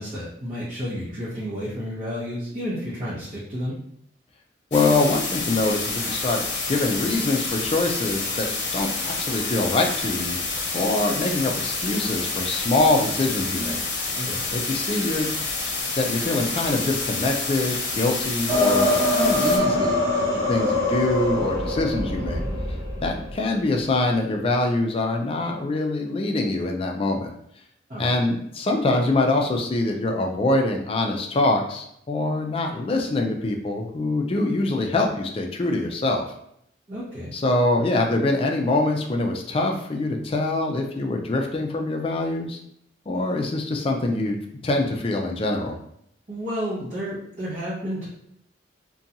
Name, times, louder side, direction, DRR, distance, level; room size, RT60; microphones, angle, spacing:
voice 1, 0.0-3.7 14.2-14.4 27.9-28.1 36.9-37.3 46.3-48.1, equal, 40° right, -9 dB, 0.8 m, -31 dB
sound 1, 4.7-19.6, left 3 dB, 70° left, 0.6 m, -28 dB
voice 2, 4.7-6.4 6.7-8.5 8.7-10.4 10.7-14.2 14.5-15.3 16.0-22.4 23.0-27.3 28.0-36.3 37.3-42.6 43.1-44.4 44.6-45.8, left 2 dB, 30° left, 3 dB, 0.3 m, -24 dB
sound 2, 18.5-23.3, left 1 dB, 80° right, 0.9 m, -23 dB
2.5 x 2.2 x 2.7 m, 0.71 s
head